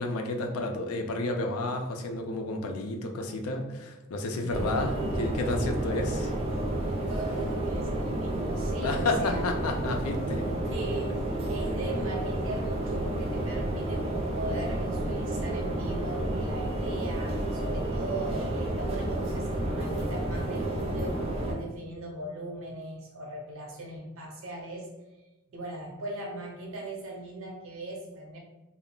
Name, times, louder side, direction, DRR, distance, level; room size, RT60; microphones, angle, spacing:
voice 1, 0.0-6.3 8.8-10.5, left 2 dB, 80° left, 3 dB, 0.4 m, -31 dB
voice 2, 4.3-4.8 7.1-9.7 10.7-24.9 25.5-28.4, right 1 dB, 65° right, 0 dB, 0.6 m, -39 dB
sound 1, 4.5-21.5, right 1 dB, 25° right, 0.4 m, -30 dB
2.2 x 2.0 x 3.7 m, 1.0 s
head